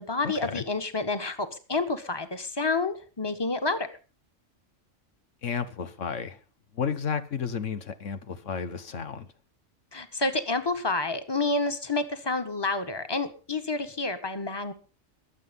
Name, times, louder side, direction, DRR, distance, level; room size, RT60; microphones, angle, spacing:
voice 1, 0.0-3.9 9.9-14.7, left 3 dB, 20° left, 1.5 m, -29 dB
voice 2, 5.4-6.4 6.7-9.3, left 6 dB, 90° left, 1.6 m, -32 dB
23.0 x 7.9 x 5.3 m
omnidirectional pair, 1.2 m